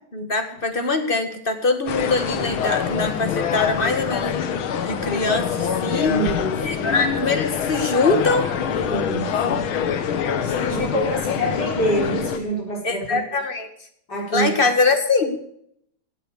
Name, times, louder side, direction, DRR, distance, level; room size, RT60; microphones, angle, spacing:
voice 1, 0.1-6.2 6.6-8.5 10.8-11.2 12.8-13.7 14.3-15.6, left 3 dB, 30° left, 7 dB, 1.6 m, -23 dB
sound 1, 1.9-12.4, left 8 dB, 90° left, 2.0 m, -25 dB
voice 2, 4.8-5.2 5.8-6.9 8.9-9.6 10.4-13.2 14.1-14.7, right 1 dB, 50° left, -1 dB, 4.8 m, -27 dB
15.5 x 8.7 x 6.4 m, 0.70 s
omnidirectional pair, 2.2 m